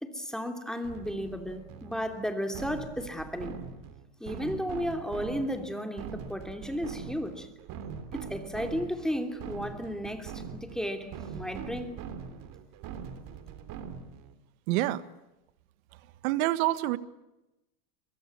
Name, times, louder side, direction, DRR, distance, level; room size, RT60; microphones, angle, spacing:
voice 1, 0.0-3.6 4.2-7.5 8.1-12.0, equal, ahead, 5 dB, 3.0 m, -34 dB
sound 1, 0.8-14.3, right 7 dB, 45° right, 3.4 m, -42 dB
voice 2, 14.7-15.0 16.2-17.0, right 16 dB, 60° right, 14 dB, 1.7 m, -26 dB
23.0 x 22.5 x 9.7 m, 0.95 s
supercardioid pair, 125°, 47 cm